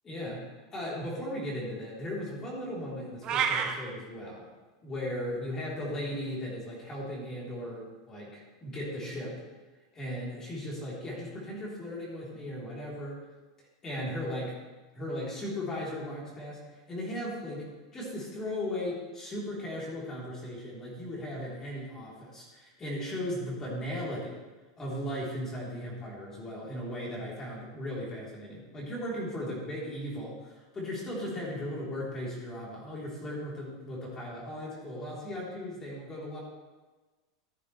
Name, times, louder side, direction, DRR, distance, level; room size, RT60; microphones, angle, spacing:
voice 1, 0.0-0.4 0.7-4.4 4.8-9.4 9.9-13.2 13.8-14.6 14.9-16.6 16.9-17.7 17.9-24.4 24.8-36.4, left 1 dB, 20° left, -5 dB, 3.5 m, -37 dB
sound 1, 3.2-3.7, right 7 dB, 30° right, 1.0 m, -27 dB
14.0 x 9.0 x 3.3 m, 1.2 s
supercardioid pair, 150°, 2 cm